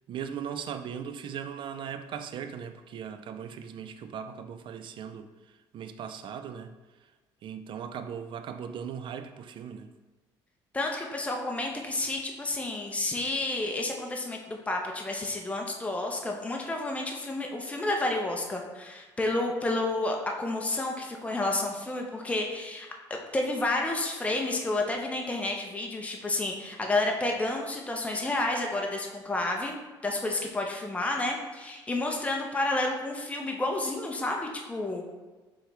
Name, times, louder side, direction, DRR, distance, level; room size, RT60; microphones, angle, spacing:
voice 1, 0.1-6.7 7.0-7.1 7.4-9.9, right 8 dB, 55° right, 9 dB, 0.4 m, -38 dB
voice 2, 10.7-35.1, left 2 dB, 15° left, 1 dB, 0.7 m, -30 dB
4.5 x 3.5 x 3.2 m, 1.3 s
supercardioid pair, 80°, 10 cm